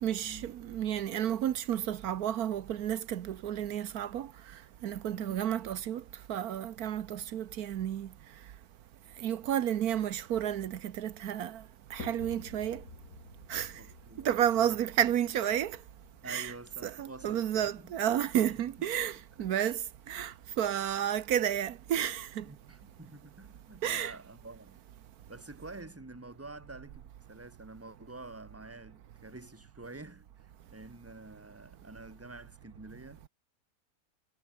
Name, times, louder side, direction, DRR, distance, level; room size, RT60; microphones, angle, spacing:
voice 1, 0.0-4.3 4.8-6.0 6.3-8.1 9.2-11.6 11.9-12.8 13.5-13.7 14.2-15.8 16.3-16.5 16.8-19.8 20.1-22.4 23.8-24.1, right 10 dB, 80° right, 1.4 m, -31 dB
voice 2, 5.1-5.4 13.8-14.4 14.6-14.8 16.2-18.0 18.5-18.6 19.4-19.5 22.4-24.8 25.3-33.3, right 2 dB, 10° right, 1.8 m, -48 dB
sound 1, 12.0-28.4, left 3 dB, 65° left, 4.9 m, -55 dB
omnidirectional pair, 1.6 m